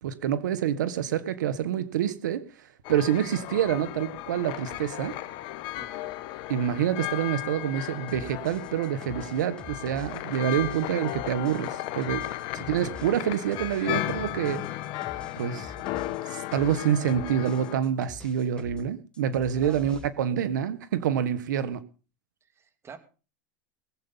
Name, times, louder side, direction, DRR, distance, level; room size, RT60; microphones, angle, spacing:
voice 1, 0.0-5.1 6.5-14.7 15.4-15.7 16.2-21.8, right 9 dB, 90° right, 1.3 m, -27 dB
sound 1, 2.8-17.8, left 15 dB, 55° left, 1.4 m, -35 dB
voice 2, 5.8-6.2 19.5-19.9 22.5-23.0, right 6 dB, 25° right, 2.6 m, -46 dB
sound 2, 8.1-18.9 19.1-20.1, left 3 dB, 10° left, 2.2 m, -47 dB
20.5 x 8.2 x 5.5 m
supercardioid pair, 120°, 10 cm